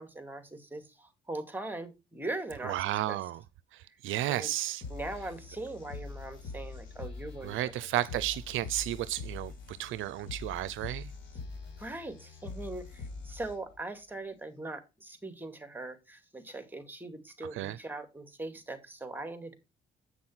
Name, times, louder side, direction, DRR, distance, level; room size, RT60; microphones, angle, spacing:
voice 1, 0.0-3.2 4.3-4.5 4.9-7.7 8.1-8.2 11.8-19.5, right 2 dB, 10° right, 2.5 m, -41 dB
voice 2, 2.6-3.4 3.7-4.8 7.4-11.1 17.5-17.8, right 14 dB, 80° right, 0.6 m, -33 dB
sound 1, 4.8-13.8, left 3 dB, 70° left, 5.2 m, -44 dB
8.3 x 6.1 x 5.7 m
cardioid pair, 90°, 20 cm